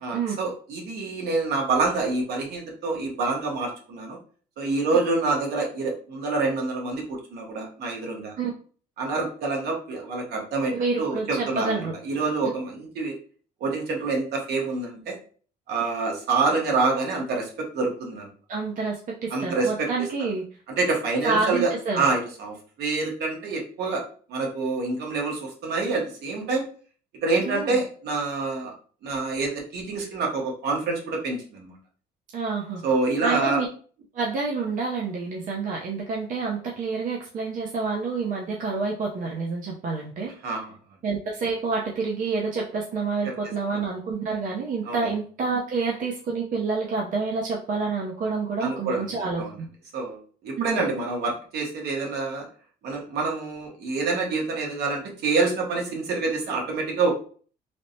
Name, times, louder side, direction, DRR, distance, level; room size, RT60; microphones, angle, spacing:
voice 1, 0.0-4.2 4.6-8.3 9.0-13.2 13.6-15.1 15.7-18.3 19.3-20.1 20.8-24.0 24.3-26.7 27.2-28.7 29.0-31.8 32.8-33.6 40.4-40.6 43.7-43.8 44.8-45.1 48.6-49.5 49.9-52.5 52.8-57.1, right 3 dB, 70° right, 1 dB, 1.0 m, -27 dB
voice 2, 10.8-11.9 18.5-20.4 21.2-22.1 27.4-27.8 32.3-32.8 33.2-33.7 34.1-40.3 41.0-49.7 50.6-50.8, right 4 dB, 50° right, -1 dB, 0.6 m, -28 dB
3.3 x 2.0 x 2.6 m, 0.42 s
cardioid pair, 110°, 17 cm